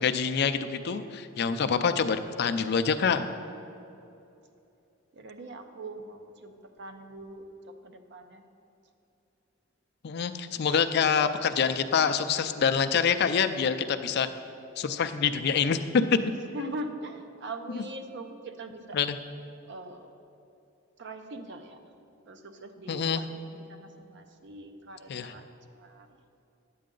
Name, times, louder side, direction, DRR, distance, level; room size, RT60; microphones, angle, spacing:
voice 1, 0.0-3.3 10.0-14.3 14.8-16.2 18.9-19.2 22.9-23.2 25.1-25.3, left 6 dB, 55° left, 10 dB, 0.4 m, -26 dB
voice 2, 5.1-7.5 7.8-8.4 16.5-19.0 19.7-20.1 21.0-21.8 22.3-26.1, right 2 dB, 60° right, 7 dB, 0.6 m, -42 dB
10.5 x 8.5 x 3.8 m, 2.7 s
head